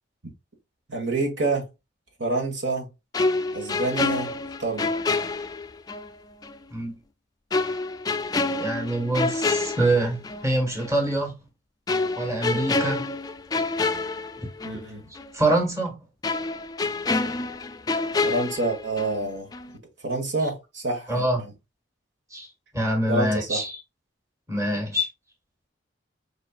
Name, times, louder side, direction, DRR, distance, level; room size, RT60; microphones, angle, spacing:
voice 1, 0.9-1.7 2.2-2.9 3.5-4.3 4.6-4.9 14.6-15.0 18.2-19.5 20.0-21.5 23.1-23.6, right 2 dB, 65° right, 1.6 m, -27 dB
sound 1, 3.1-6.1 6.4-6.6 7.5-10.5 10.8-11.0 11.9-14.9 15.2-15.3 16.2-19.3 19.5-19.8, left 3 dB, 20° left, 0.3 m, -27 dB
voice 2, 8.6-11.3 12.2-13.1 14.4-14.5 15.3-16.0 21.1-21.4 22.3-22.5 22.7-23.8 24.5-25.1, right 1 dB, 15° right, 1.6 m, -25 dB
5.0 x 4.2 x 2.4 m
head